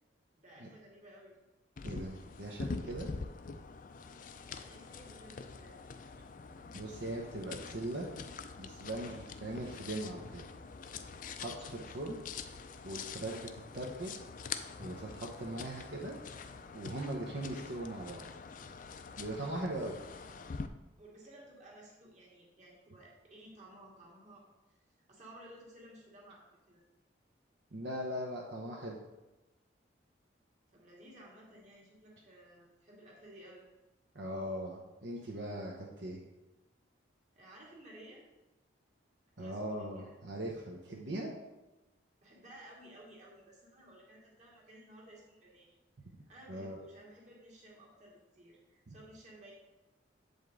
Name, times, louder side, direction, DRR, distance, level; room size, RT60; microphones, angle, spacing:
voice 1, 0.3-1.3 4.5-5.9 21.0-24.8 25.1-26.8 30.7-33.7 37.4-38.2 39.3-40.1 42.2-45.8 46.3-49.5, right 1 dB, 40° right, -4 dB, 2.0 m, -55 dB
sound 1, 1.8-20.7, left 5 dB, 45° left, 0.4 m, -45 dB
voice 2, 1.8-3.1 6.7-8.1 8.6-10.4 11.4-12.2 12.8-14.1 14.8-16.2 16.7-18.3 19.2-20.0 27.7-29.0 34.1-36.2 39.4-41.3 46.5-46.8 48.9-49.0, right 1 dB, 70° right, -2 dB, 0.9 m, -40 dB
8.0 x 5.3 x 3.8 m, 1.1 s
head